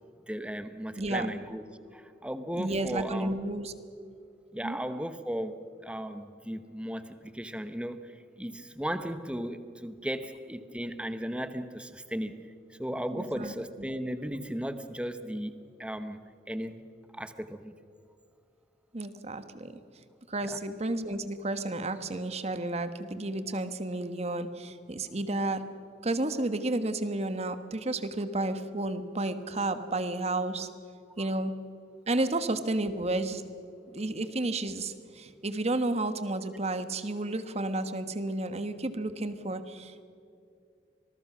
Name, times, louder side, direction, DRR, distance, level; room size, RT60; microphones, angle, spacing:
voice 1, 0.3-1.6 1.9-3.3 4.5-12.4 12.7-16.8 17.1-17.7 20.4-20.6 31.2-31.3, equal, 5° right, 10 dB, 1.0 m, -36 dB
voice 2, 2.6-3.7 4.6-4.8 13.2-13.5 18.9-19.8 20.3-25.6 26.0-30.7 31.2-31.5 32.1-33.4 33.9-40.0, right 2 dB, 40° right, 10 dB, 1.3 m, -32 dB
26.0 x 20.0 x 6.2 m, 2.5 s
head